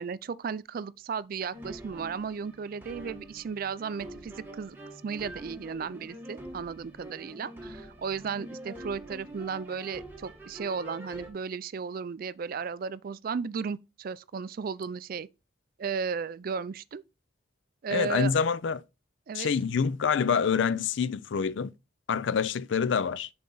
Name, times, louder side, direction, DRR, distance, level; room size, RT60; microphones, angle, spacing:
voice 1, 0.0-4.8 5.0-15.3 15.8-17.0 17.8-18.3 19.3-19.5, right 6 dB, 45° right, 0.3 m, -35 dB
sound 1, 1.5-11.3, right 1 dB, 10° right, 1.4 m, -45 dB
voice 2, 17.9-18.8 19.3-21.7 22.1-23.3, left 6 dB, 65° left, 0.4 m, -26 dB
7.1 x 4.3 x 3.9 m
head